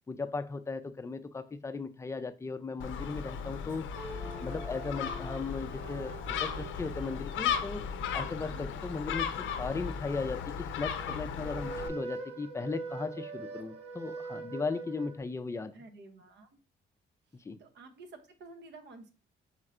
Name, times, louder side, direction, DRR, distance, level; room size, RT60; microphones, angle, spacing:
voice 1, 0.1-3.9 4.4-7.8 8.1-15.7 17.4-17.6, left 4 dB, 15° left, 0.4 m, -37 dB
Gull seagull, 2.8-11.9, left 7 dB, 75° left, 0.5 m, -36 dB
sound 1, 4.0-8.9 10.9-15.2, right 3 dB, 30° right, 0.8 m, -44 dB
voice 2, 15.7-16.5 17.3-19.1, right 3 dB, 60° right, 0.7 m, -51 dB
4.3 x 3.1 x 2.5 m
cardioid pair, 90°, 20 cm